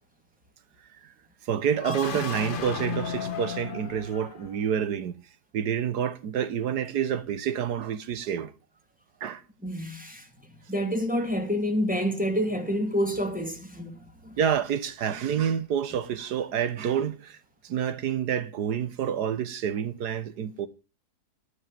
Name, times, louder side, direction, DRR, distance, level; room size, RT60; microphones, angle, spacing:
voice 1, 1.4-5.1 5.5-8.5 9.2-9.4 14.4-17.4 17.6-20.7, right 8 dB, 90° right, 1.6 m, -28 dB
sound 1, 1.7-4.7, left 6 dB, 40° left, 1.0 m, -34 dB
voice 2, 9.6-10.3 10.7-14.4, equal, 5° right, 2.8 m, -28 dB
18.5 x 6.4 x 9.2 m
omnidirectional pair, 1.7 m